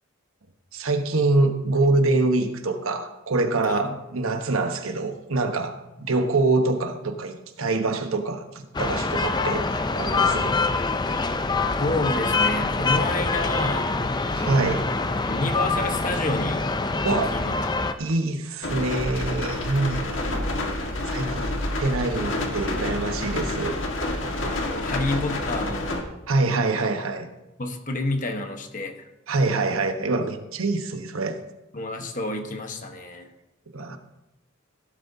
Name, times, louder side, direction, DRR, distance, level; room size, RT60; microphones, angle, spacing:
voice 1, 0.7-9.7 9.9-10.6 14.3-14.9 17.0-17.4 18.0-20.3 21.0-21.5 21.8-23.8 26.3-27.3 29.3-31.4 33.7-34.0, right 2 dB, 85° right, 6 dB, 1.2 m, -25 dB
sound 1, 8.7-17.9, left 3 dB, 20° left, 0.5 m, -25 dB
voice 2, 11.8-13.9 14.3-14.6 15.3-16.6 17.1-17.5 17.8-18.0 21.1-21.6 24.5-26.0 27.6-29.1 31.7-33.3, left 2 dB, 40° left, 5 dB, 1.2 m, -29 dB
sound 2, 18.6-26.0, left 1 dB, 65° left, 1.8 m, -28 dB
16.5 x 12.0 x 2.8 m, 0.98 s
head